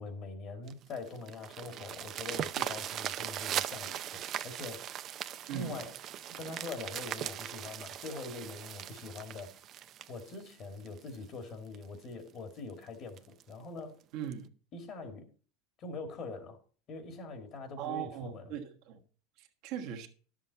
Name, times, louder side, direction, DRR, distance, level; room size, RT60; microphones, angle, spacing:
voice 1, 0.0-5.0 5.5-6.0 6.3-9.5 10.1-14.0 14.7-15.3 15.8-16.6 16.9-18.5, left 3 dB, 45° left, 2.1 m, -43 dB
sound 1, 0.7-11.2 11.7-11.8 12.3-12.4 12.7-12.8 13.2-13.4 14.3-14.4, right 11 dB, 40° right, 0.5 m, -39 dB
voice 2, 5.5-5.8 14.1-14.5 17.8-19.0 19.4-20.1, right 9 dB, 60° right, 1.4 m, -39 dB
10.5 x 7.6 x 4.0 m
supercardioid pair, 115°, 0 cm